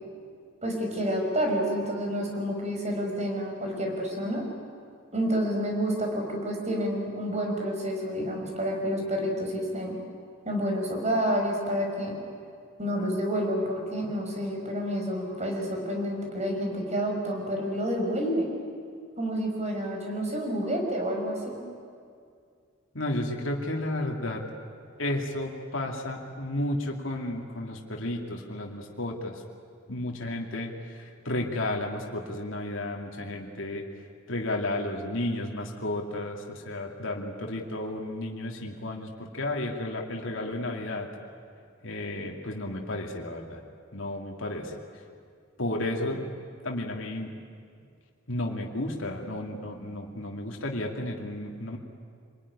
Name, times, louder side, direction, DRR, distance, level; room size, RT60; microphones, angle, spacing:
voice 1, 0.6-4.4 5.1-9.9 10.5-12.1 12.8-18.5 19.2-21.6, equal, 35° right, 1 dB, 5.6 m, -29 dB
voice 2, 22.9-24.4 25.0-29.4 29.9-33.9 34.3-41.1 41.8-43.6 43.9-44.8 45.6-46.3 46.6-47.3 48.3-51.8, left 1 dB, 75° left, 1 dB, 2.6 m, -32 dB
26.5 x 21.0 x 10.0 m, 2.2 s
head